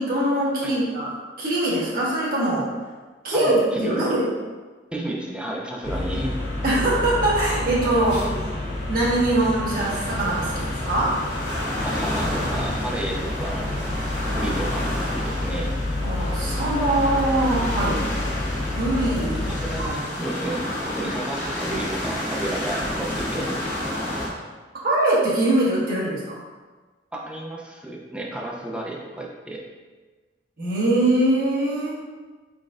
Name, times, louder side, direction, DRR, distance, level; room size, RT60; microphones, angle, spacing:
voice 1, 0.0-2.7 3.2-4.3 6.6-8.4 8.9-11.2 16.0-18.1 18.7-19.5 19.8-20.0 24.8-26.4 30.6-32.0, right 1 dB, 55° right, -7 dB, 1.2 m, -22 dB
voice 2, 3.3-4.2 4.9-6.4 11.8-13.7 14.3-15.7 19.6-20.6 21.0-23.5 27.1-29.6, right 1 dB, 5° right, -2 dB, 0.5 m, -32 dB
sound 1, 5.8-19.9, left 1 dB, 70° left, 1.0 m, -29 dB
sound 2, 9.7-24.3, left 1 dB, 45° left, 1.2 m, -31 dB
4.0 x 3.8 x 2.5 m, 1.3 s
head